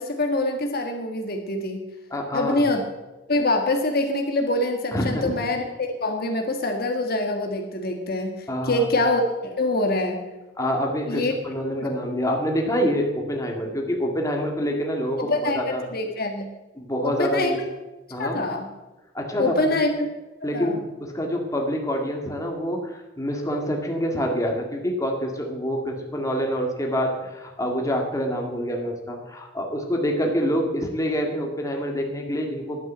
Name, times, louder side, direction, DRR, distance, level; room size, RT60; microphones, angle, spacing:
voice 1, 0.0-1.8 2.3-2.8 3.3-10.2 11.0-11.3 11.8-11.9 15.2-16.5 17.0-17.6 18.2-18.7 19.4-20.1 20.5-20.8, left 2 dB, 55° left, 4 dB, 1.7 m, -25 dB
voice 2, 2.1-2.7 4.9-5.3 8.5-8.9 10.6-15.8 16.8-17.6 18.1-18.4 19.1-19.7 20.4-32.9, equal, 15° left, 1 dB, 1.9 m, -26 dB
11.5 x 9.1 x 7.3 m, 1.1 s
head